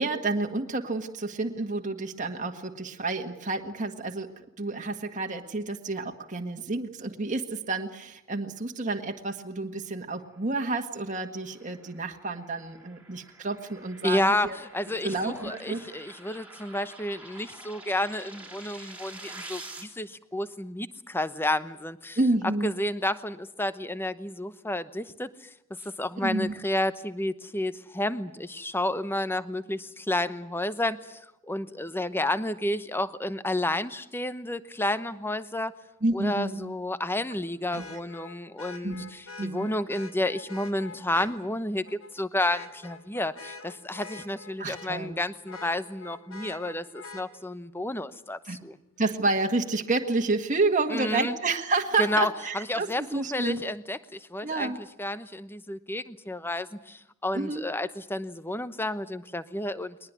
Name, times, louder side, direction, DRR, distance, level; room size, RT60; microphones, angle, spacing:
voice 1, 0.0-4.3 4.6-14.6 15.0-15.8 22.2-22.7 26.2-26.5 36.0-36.6 37.7-37.8 38.8-39.0 39.4-39.7 44.6-45.2 48.5-48.6 49.0-53.6 54.4-54.8 57.3-57.7, right 3 dB, 35° right, 3 dB, 1.7 m, -29 dB
sound 1, 11.0-19.8, right 2 dB, 5° right, 3.9 m, -47 dB
voice 2, 14.0-22.2 22.6-25.3 25.8-31.2 31.5-35.7 36.1-48.8 50.9-51.3 52.0-54.7 55.0-60.0, left 1 dB, 10° left, 13 dB, 0.9 m, -31 dB
Vehicle horn car horn honking, 34.9-35.0 37.7-41.3 41.9-42.1 42.5-45.1 45.5-47.3 49.1-49.2, left 3 dB, 75° left, 2.8 m, -44 dB
22.0 x 20.0 x 9.6 m, 0.81 s
head